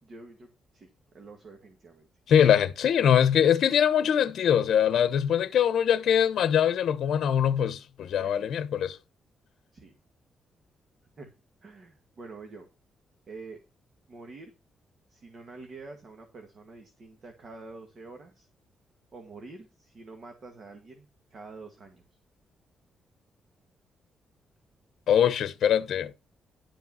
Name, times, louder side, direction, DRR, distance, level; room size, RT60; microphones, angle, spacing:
voice 1, 0.0-0.5 0.7-0.9 1.1-2.1 8.1-8.5 9.7-9.9 11.2-11.3 11.6-12.7 13.3-13.6 14.1-14.5 15.1-18.5 19.1-22.0, right 3 dB, 45° right, 2.0 m, -46 dB
voice 2, 2.3-9.0 25.1-26.1, left 9 dB, 70° left, 0.9 m, -23 dB
11.5 x 5.2 x 5.6 m
cardioid pair, 135°, 0 cm